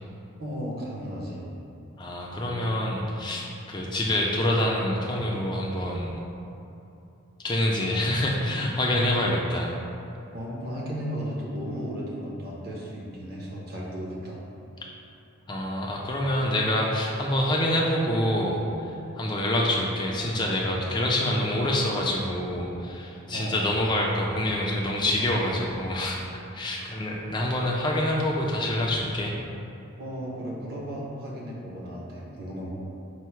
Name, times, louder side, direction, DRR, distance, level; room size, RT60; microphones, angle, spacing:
voice 1, 0.4-1.4 10.3-14.4 23.3-23.6 26.8-26.9 30.0-32.7, equal, 45° right, -4 dB, 0.7 m, -35 dB
voice 2, 2.0-6.2 7.4-9.7 15.5-26.3 26.5-29.3, left 1 dB, 20° left, -2 dB, 0.4 m, -26 dB
4.6 x 2.0 x 4.3 m, 2.9 s
head